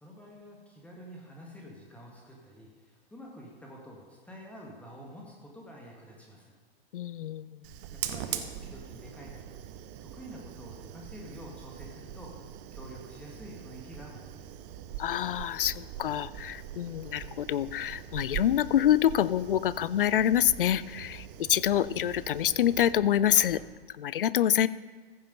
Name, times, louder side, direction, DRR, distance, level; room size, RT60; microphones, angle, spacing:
voice 1, 0.0-6.5 7.9-9.5 10.0-12.4 12.7-14.4, equal, 5° left, -2 dB, 1.6 m, -48 dB
voice 2, 6.9-7.6 15.0-23.6 24.0-24.7, left 11 dB, 60° left, 18 dB, 0.5 m, -26 dB
Fire, 7.6-23.8, right 10 dB, 30° right, 0.8 m, -42 dB
14.5 x 7.2 x 5.2 m, 1.4 s
figure-of-eight pair, 115°, 30 cm